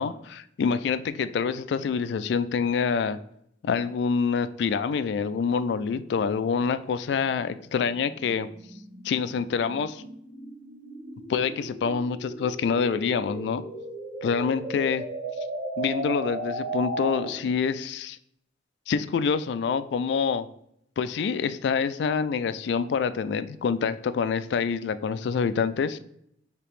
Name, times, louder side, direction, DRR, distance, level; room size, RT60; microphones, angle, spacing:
voice 1, 0.0-3.2 3.6-8.5 9.0-10.0 11.3-13.6 14.2-15.0 15.8-18.2 18.9-20.4 21.0-26.0, left 6 dB, 70° left, 13 dB, 0.3 m, -26 dB
sound 1, 6.6-17.5, right 1 dB, 60° right, 1.1 m, -36 dB
5.0 x 2.9 x 3.1 m, 0.72 s
head